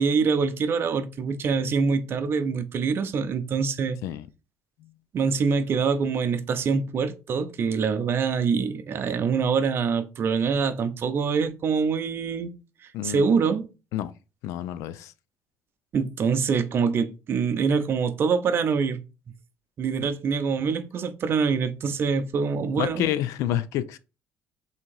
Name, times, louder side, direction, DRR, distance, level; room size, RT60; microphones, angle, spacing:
voice 1, 0.0-4.0 5.1-12.5 13.0-13.7 15.9-19.0 19.8-23.1, right 5 dB, 50° right, 0.5 m, -25 dB
voice 2, 14.4-15.1 22.8-24.0, left 12 dB, 85° left, 0.4 m, -28 dB
3.5 x 2.8 x 4.6 m
cardioid pair, 110°, 5 cm